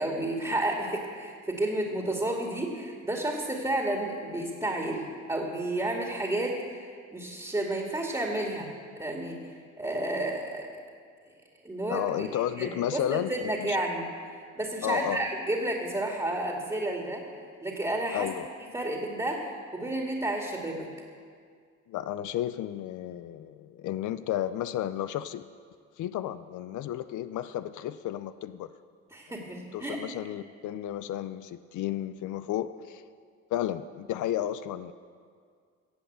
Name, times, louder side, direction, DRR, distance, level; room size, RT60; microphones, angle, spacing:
voice 1, 0.0-8.7 9.0-9.4 9.8-10.7 11.6-17.2 17.6-18.3 18.7-20.9 29.1-30.0, right 1 dB, 15° right, 0 dB, 2.2 m, -31 dB
voice 2, 11.9-13.8 14.8-15.3 18.1-18.5 21.9-25.4 26.0-28.7 29.7-33.0 33.5-34.9, left 12 dB, 75° left, 12 dB, 0.6 m, -32 dB
16.5 x 7.8 x 8.1 m, 2.1 s
cardioid pair, 90°, 30 cm